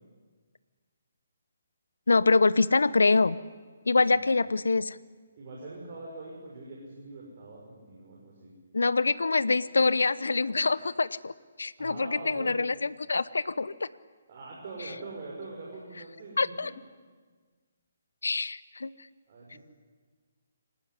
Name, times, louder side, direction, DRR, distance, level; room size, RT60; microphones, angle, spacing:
voice 1, 2.1-3.4 3.9-5.0 8.7-11.3 11.6-13.9 16.4-16.7 18.2-18.9, left 3 dB, 70° left, 18 dB, 0.8 m, -25 dB
voice 2, 4.0-4.3 5.4-8.5 11.8-12.6 14.3-16.7 19.3-19.6, right 3 dB, 45° right, -3 dB, 6.3 m, -43 dB
24.5 x 19.0 x 9.9 m, 1.5 s
figure-of-eight pair, 140°, 0 cm